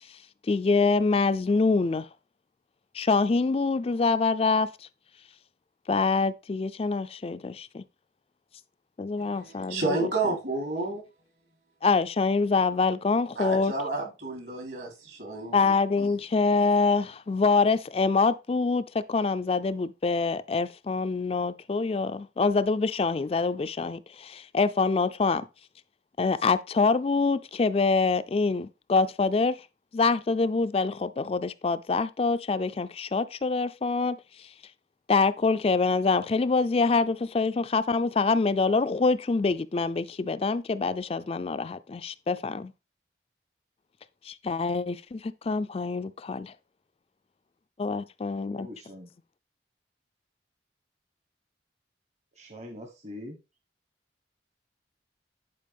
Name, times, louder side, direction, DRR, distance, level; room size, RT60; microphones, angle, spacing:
voice 1, 0.5-2.1 2.9-4.9 5.9-7.8 9.0-10.0 11.8-13.7 15.5-25.5 26.2-29.6 29.9-34.5 35.1-42.7 44.2-46.5 47.8-48.7, left 4 dB, 30° left, 0.3 m, -25 dB
voice 2, 9.2-11.0 13.4-16.1, right 3 dB, 70° right, 3.6 m, -31 dB
voice 3, 48.5-49.1 52.4-53.3, left 1 dB, 40° right, 1.0 m, -43 dB
10.5 x 4.6 x 3.5 m
head